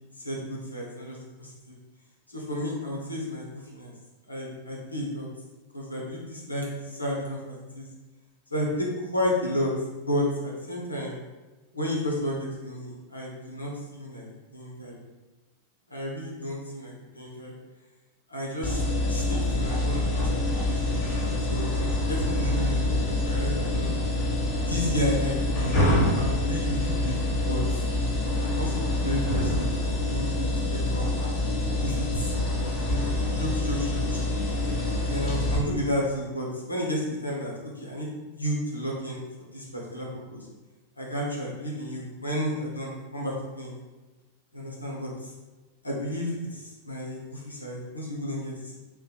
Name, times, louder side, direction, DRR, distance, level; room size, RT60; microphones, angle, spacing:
voice 1, 0.2-1.8 2.3-3.9 4.3-5.3 5.7-7.9 8.5-9.7 10.1-11.2 11.7-14.3 14.5-14.9 15.9-17.5 18.3-18.8 19.1-21.1 21.5-23.9 24.6-27.8 28.4-31.1 31.8-32.3 32.9-34.2 35.1-40.5 41.0-43.7 44.5-45.3 45.8-48.8, equal, 85° left, -3 dB, 0.6 m, -32 dB
sound 1, 18.6-35.6, left 1 dB, 35° left, 1.0 m, -26 dB
2.8 x 2.0 x 2.3 m, 1.2 s
figure-of-eight pair, 90°, 0 cm